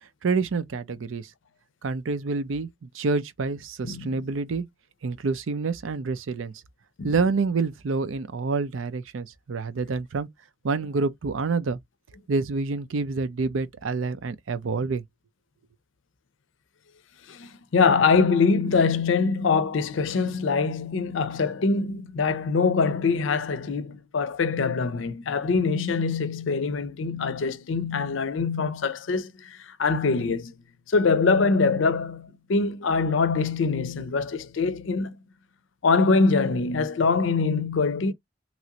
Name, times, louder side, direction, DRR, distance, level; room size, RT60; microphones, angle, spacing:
voice 1, 0.2-1.3 1.8-4.6 5.0-6.5 7.0-10.3 10.6-11.8 12.3-15.0, right 4 dB, 85° right, 0.5 m, -27 dB
voice 2, 3.8-4.3 7.0-7.1 17.3-30.5 30.9-35.2 35.8-38.1, left 4 dB, 75° left, 0.5 m, -24 dB
3.1 x 2.5 x 2.8 m
head